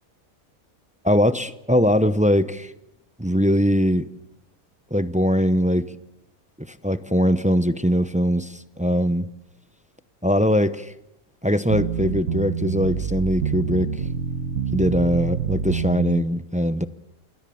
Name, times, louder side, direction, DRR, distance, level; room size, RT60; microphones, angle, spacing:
voice 1, 1.0-2.7 3.2-4.0 4.9-5.9 6.6-9.3 10.2-10.9 11.4-13.9 14.7-16.8, equal, 10° right, 12 dB, 0.5 m, -21 dB
sound 1, 11.7-16.2, right 7 dB, 60° right, 1.7 m, -27 dB
28.5 x 21.5 x 7.1 m, 0.84 s
omnidirectional pair, 1.5 m